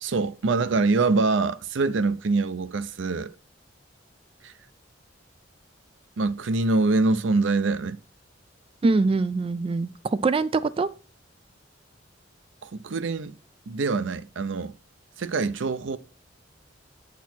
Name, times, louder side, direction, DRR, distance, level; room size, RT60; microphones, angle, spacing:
voice 1, 0.0-3.3 4.4-4.5 6.2-8.0 12.6-13.3 13.7-14.7 15.2-16.0, right 3 dB, 80° right, 0.6 m, -24 dB
voice 2, 8.8-10.9, right 3 dB, 30° right, 0.3 m, -23 dB
8.3 x 6.1 x 4.4 m
head